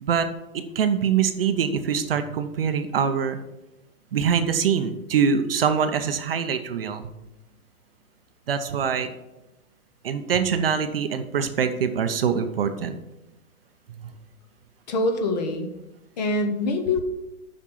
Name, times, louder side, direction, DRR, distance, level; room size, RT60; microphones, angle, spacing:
voice 1, 0.0-3.4 4.1-7.0 8.5-9.1 10.0-13.0, right 7 dB, 45° right, 8 dB, 0.7 m, -24 dB
voice 2, 14.9-15.7 16.2-17.0, left 2 dB, 30° left, 6 dB, 0.9 m, -24 dB
7.5 x 5.3 x 7.1 m, 0.95 s
hypercardioid pair, 160°, 41 cm